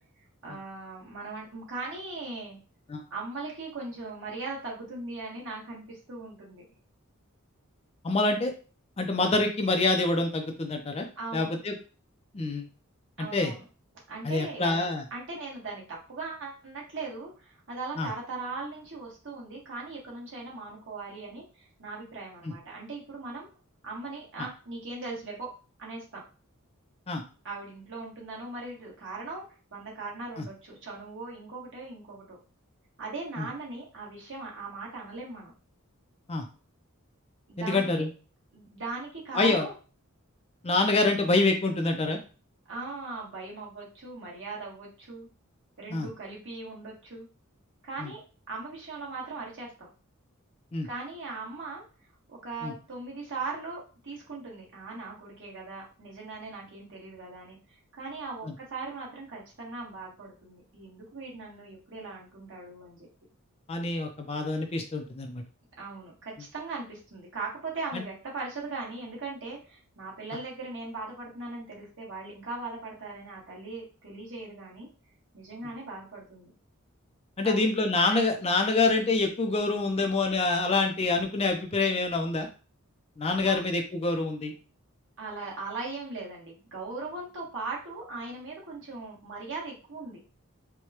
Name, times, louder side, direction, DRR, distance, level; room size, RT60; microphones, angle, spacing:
voice 1, 0.4-2.6 3.1-6.6 11.2-11.6 13.2-13.6 14.1-23.5 23.8-25.5 25.8-26.2 27.4-32.4 33.0-35.5 37.5-38.0 38.5-39.7 42.7-45.3 45.8-47.3 47.8-48.2 48.5-49.9 50.8-51.8 52.3-63.1 65.8-74.9 75.3-76.5 77.4-77.7 83.3-83.6 85.2-90.2, right 3 dB, 60° right, -3 dB, 1.5 m, -39 dB
voice 2, 8.0-8.5 9.0-11.1 11.3-11.7 12.3-12.7 13.2-13.5 14.2-15.0 18.0-18.1 22.4-22.5 24.4-24.5 27.1-27.2 30.4-30.5 33.4-33.5 36.3-36.4 37.6-38.1 39.3-39.7 40.6-42.2 45.9-46.1 48.0-48.1 50.7-50.9 52.6-52.7 58.4-58.5 63.7-65.4 67.9-68.0 77.4-82.5 83.2-84.5, left 3 dB, 30° left, 4 dB, 0.5 m, -26 dB
4.6 x 2.2 x 2.9 m, 0.36 s
head